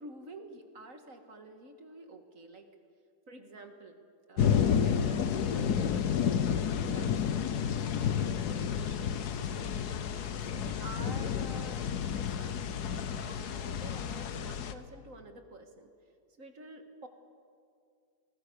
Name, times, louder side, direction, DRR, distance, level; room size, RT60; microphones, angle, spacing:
voice 1, 0.0-2.7 3.3-4.0 4.3-7.1 7.8-9.8 10.3-15.9 16.4-17.1, right 2 dB, 45° right, 6 dB, 2.0 m, -49 dB
sound 1, 4.4-14.7, left 8 dB, 60° left, 1.4 m, -30 dB
28.0 x 19.5 x 6.9 m, 2.3 s
omnidirectional pair, 2.1 m